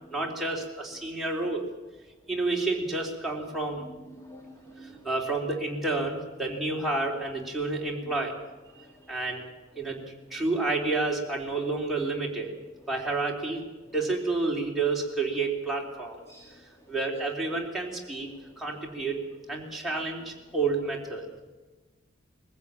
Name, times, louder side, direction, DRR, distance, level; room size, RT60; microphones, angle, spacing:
voice 1, 0.1-1.7 2.3-3.8 5.0-8.4 9.1-9.4 9.8-10.0 10.3-12.6 12.9-13.6 13.9-16.2 16.9-18.3 18.6-19.2 19.5-21.4, right 3 dB, ahead, -2 dB, 3.4 m, -30 dB
voice 2, 3.8-5.0 8.7-9.2 16.3-16.5, right 1 dB, 15° left, 1 dB, 1.7 m, -49 dB
22.0 x 15.5 x 8.9 m, 1.2 s
head